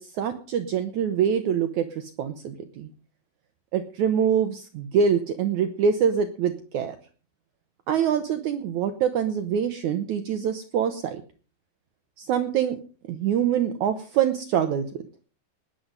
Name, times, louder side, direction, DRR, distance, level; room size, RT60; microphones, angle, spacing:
voice 1, 0.0-2.9 3.7-7.0 7.9-11.2 12.2-12.8 13.1-15.0, right 8 dB, 70° right, 9 dB, 1.9 m, -25 dB
19.0 x 7.8 x 5.4 m, 0.39 s
omnidirectional pair, 4.3 m